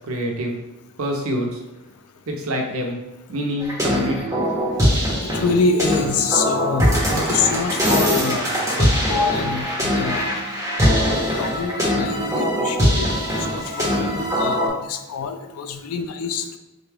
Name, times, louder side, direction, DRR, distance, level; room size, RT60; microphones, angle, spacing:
voice 1, 0.1-0.6 1.0-1.6 2.3-3.0 3.3-4.3, equal, 75° right, 1 dB, 0.7 m, -26 dB
sound 1, 3.6-14.7, equal, 15° right, 0.9 m, -21 dB
voice 2, 5.2-8.5 8.8-10.2 11.4-13.1 13.5-16.6, left 5 dB, 85° left, 8 dB, 0.4 m, -26 dB
3.8 x 2.2 x 3.3 m, 1.0 s
head